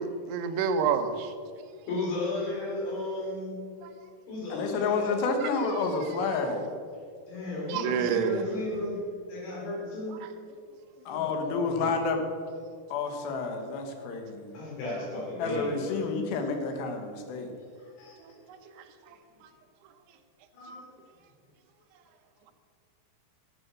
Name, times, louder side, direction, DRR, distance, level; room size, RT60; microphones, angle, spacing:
voice 1, 0.0-1.3 3.8-3.9 7.7-8.4 18.2-18.6 19.1-19.2, right 6 dB, 80° right, 7 dB, 2.8 m, -28 dB
voice 2, 1.9-3.6 4.3-5.1 7.3-9.0 9.3-10.2 11.1-11.9 14.5-16.0 16.4-16.5 18.0-18.2 20.5-20.8, left 2 dB, 70° left, -4 dB, 5.5 m, -34 dB
voice 3, 4.5-6.7 11.1-12.2 12.9-14.5 15.4-17.5, left 4 dB, 85° left, 5 dB, 3.4 m, -30 dB
13.0 x 8.6 x 6.1 m, 2.2 s
omnidirectional pair, 4.8 m